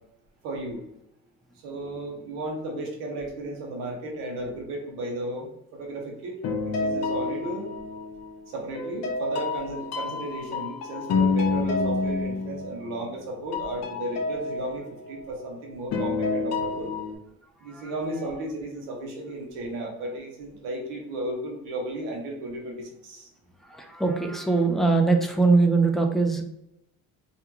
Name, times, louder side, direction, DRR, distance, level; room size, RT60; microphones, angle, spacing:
voice 1, 0.4-0.8 1.6-7.7 8.5-16.9 17.6-23.3, right 1 dB, 90° right, 1 dB, 0.8 m, -34 dB
sound 1, 6.4-8.3 8.8-13.2 13.5-15.4 15.9-17.2, left 3 dB, 50° left, 0.6 m, -28 dB
voice 2, 17.6-17.9 18.2-18.3 23.6-26.4, right 3 dB, ahead, 3 dB, 0.4 m, -22 dB
2.4 x 2.2 x 2.9 m, 0.80 s
supercardioid pair, 80°, 33 cm